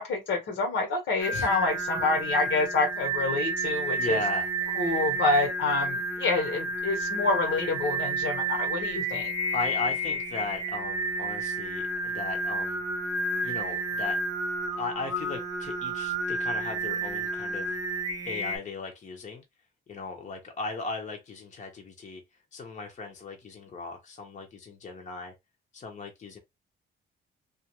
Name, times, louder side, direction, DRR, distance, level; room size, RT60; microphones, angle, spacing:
voice 1, 0.0-4.2 4.8-9.3, left 3 dB, 70° left, 1.1 m, -27 dB
Singing, 1.2-18.6, right 2 dB, 20° right, 0.8 m, -31 dB
voice 2, 4.0-4.5 9.5-12.8 13.4-14.2 14.7-17.8 18.2-19.4 19.9-22.2 22.5-25.3 25.7-26.4, left 3 dB, 40° left, 0.8 m, -37 dB
2.4 x 2.3 x 2.9 m
cardioid pair, 90°, 20 cm